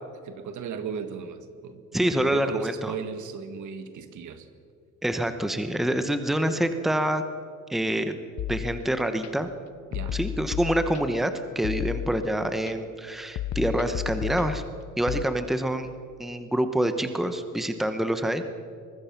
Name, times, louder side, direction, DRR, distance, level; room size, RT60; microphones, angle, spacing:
voice 1, 0.2-4.5 9.9-10.2, right 6 dB, 70° right, 9 dB, 1.7 m, -36 dB
voice 2, 1.9-2.9 5.0-7.2 7.7-8.1 8.5-9.5 10.1-14.6 15.0-18.4, right 1 dB, ahead, 8 dB, 1.0 m, -26 dB
sound 1, 8.4-9.3 9.9-11.3 11.6-12.7 13.4-15.2, left 11 dB, 60° left, 0.7 m, -33 dB
24.0 x 21.5 x 5.9 m, 2.3 s
cardioid pair, 145°, 31 cm